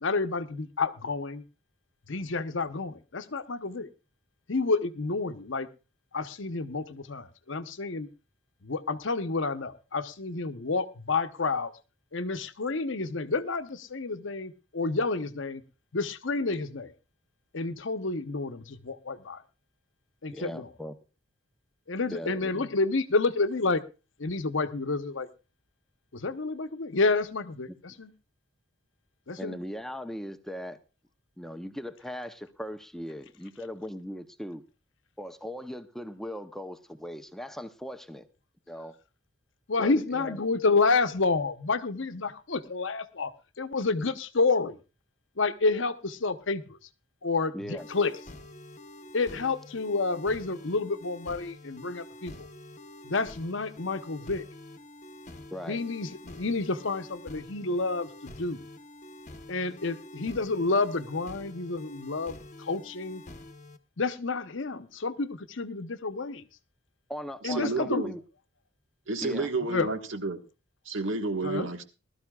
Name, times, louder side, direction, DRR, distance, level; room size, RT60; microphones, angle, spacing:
voice 1, 0.0-1.4 2.1-3.9 4.5-5.7 6.1-8.1 8.6-11.7 12.1-15.6 15.9-16.9 17.5-19.4 20.2-20.7 21.9-23.8 24.2-25.3 26.1-28.1 29.3-29.6 39.7-44.8 45.4-46.8 47.2-48.1 49.1-52.5 53.0-54.4 55.7-58.6 59.5-63.2 64.0-66.4 67.4-68.0 69.6-69.9 71.4-71.7, left 3 dB, 65° left, 0.9 m, -29 dB
voice 2, 20.3-20.9 22.1-22.7 29.4-30.8 31.4-34.6 35.2-38.3 38.7-38.9 39.8-40.4 47.5-47.9 55.5-55.8 67.1-68.2 69.2-69.5, equal, ahead, 0.7 m, -39 dB
sound 1, 47.8-63.8, left 1 dB, 35° left, 1.0 m, -47 dB
voice 3, 67.4-68.1 69.1-70.4 70.8-71.8, right 3 dB, 70° right, 1.5 m, -31 dB
20.5 x 13.0 x 2.3 m
head